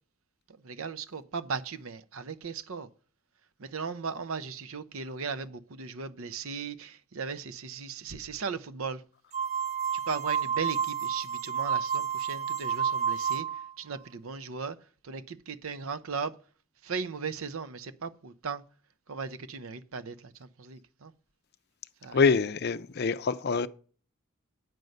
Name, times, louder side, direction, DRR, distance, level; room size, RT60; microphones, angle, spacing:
voice 1, 0.5-2.9 3.6-9.0 9.9-14.8 15.0-16.4 16.8-18.6 19.1-21.1 22.0-22.2, right 5 dB, 70° right, 0.6 m, -37 dB
sound 1, 9.3-13.7, right 7 dB, 30° right, 0.4 m, -30 dB
voice 2, 22.1-23.7, left 5 dB, 45° left, 0.5 m, -25 dB
9.1 x 5.3 x 7.8 m
head